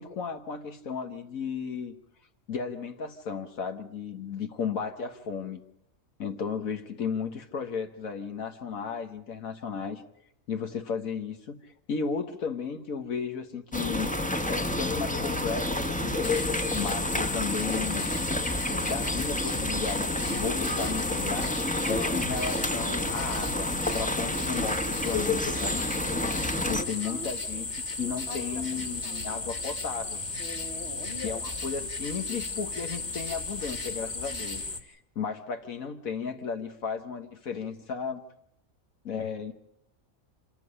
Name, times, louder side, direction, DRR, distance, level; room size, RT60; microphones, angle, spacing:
voice 1, 0.0-1.9 2.5-5.6 6.2-10.0 10.5-14.1 14.5-16.1 16.7-18.0 18.9-21.6 21.9-25.9 26.7-30.2 31.2-38.2 39.0-39.5, left 6 dB, 75° left, 6 dB, 1.7 m, -34 dB
sound 1, 13.7-26.8, left 1 dB, 5° left, 1.1 m, -29 dB
sound 2, 16.2-34.8, left 3 dB, 30° left, 1.8 m, -35 dB
voice 2, 26.1-27.7 28.0-29.2 30.4-31.4, left 3 dB, 50° left, 8 dB, 1.8 m, -43 dB
27.0 x 14.0 x 9.8 m, 0.77 s
omnidirectional pair, 1.5 m